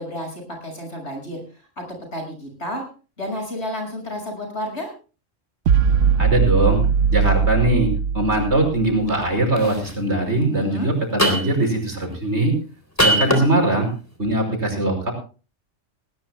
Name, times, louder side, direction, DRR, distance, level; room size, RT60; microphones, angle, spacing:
voice 1, 0.0-1.8 2.1-2.8 3.2-4.9 10.5-10.9, left 1 dB, 65° left, 2 dB, 6.7 m, -31 dB
sound 1, 5.7-9.1, right 6 dB, 80° right, 1.2 m, -20 dB
voice 2, 6.2-6.8 7.1-7.9 8.1-12.5 13.0-13.9 14.2-15.1, right 1 dB, 60° right, 3 dB, 5.7 m, -21 dB
sound 2, 9.1-9.3 9.6-9.9 11.2-11.7 13.0-13.5, equal, 10° left, 3.5 m, -20 dB
20.0 x 19.0 x 2.2 m, 0.35 s
omnidirectional pair, 1.3 m